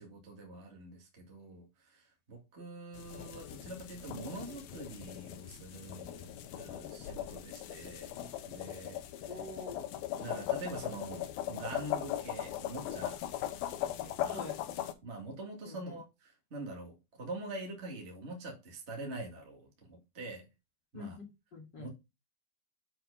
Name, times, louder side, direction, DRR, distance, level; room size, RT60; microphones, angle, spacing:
voice 1, 0.0-9.0 9.3-9.4 10.2-13.2 14.0-14.5 15.0-20.5 20.9-21.2 21.8-21.9, right 2 dB, 55° right, 0.7 m, -45 dB
sound 1, 2.9-14.9, left 12 dB, 75° left, 2.3 m, -39 dB
voice 2, 9.3-9.9 14.3-14.5 15.6-15.9 20.9-21.9, left 2 dB, 35° left, 2.1 m, -46 dB
7.6 x 4.6 x 5.3 m
omnidirectional pair, 5.1 m